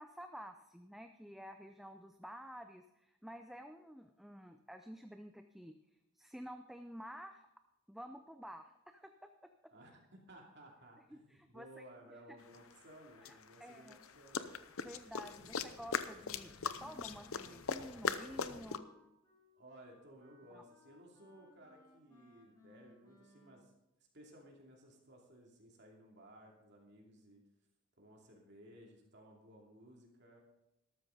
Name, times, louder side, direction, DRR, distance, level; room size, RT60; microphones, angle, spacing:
voice 1, 0.0-5.7 6.1-7.5 7.9-9.5 11.1-11.8 12.3-12.4 13.2-14.0 14.8-18.9 20.5-20.6, equal, ahead, 6 dB, 0.5 m, -51 dB
voice 2, 9.7-14.5 15.2-15.7 19.6-23.7 24.1-27.4 28.0-30.4, right 1 dB, 50° right, 0 dB, 2.6 m, -58 dB
sound 1, 12.5-12.6 13.2-18.8, left 6 dB, 75° left, 0.7 m, -40 dB
Wind instrument woodwind instrument, 16.3-23.8, left 2 dB, 15° left, 2.6 m, -66 dB
13.0 x 13.0 x 3.9 m, 0.90 s
head